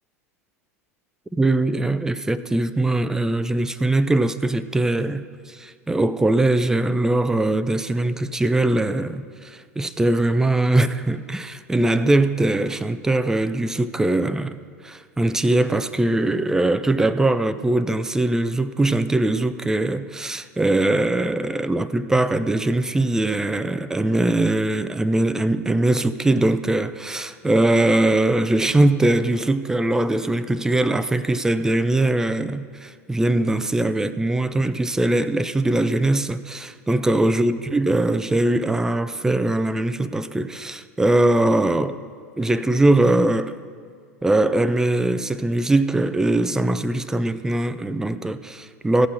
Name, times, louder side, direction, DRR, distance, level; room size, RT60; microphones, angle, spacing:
voice 1, 1.4-42.0 42.4-43.6 44.2-49.1, right 2 dB, 5° right, 0.4 m, -21 dB
15.5 x 5.8 x 6.3 m
figure-of-eight pair, 80°, 8 cm